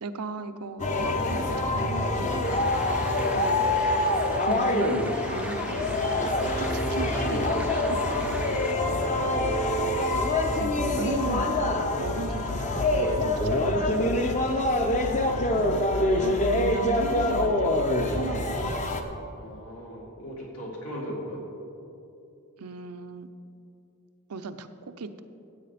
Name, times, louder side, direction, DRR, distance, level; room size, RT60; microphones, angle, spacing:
voice 1, 0.0-2.7 3.3-3.6 4.5-8.0 10.6-14.3 15.5-18.8 22.6-23.3 24.3-25.2, right 3 dB, 80° right, 9 dB, 0.6 m, -37 dB
sound 1, 0.8-19.0, left 1 dB, 35° left, 0.8 m, -25 dB
sound 2, 2.4-8.7, right 1 dB, 5° right, 0.4 m, -41 dB
sound 3, 4.4-19.5, left 3 dB, 55° left, 0.5 m, -39 dB
voice 2, 8.7-9.6 15.2-15.9 19.4-21.4, equal, 75° left, -2 dB, 2.5 m, -39 dB
14.5 x 8.3 x 4.2 m, 2.7 s
head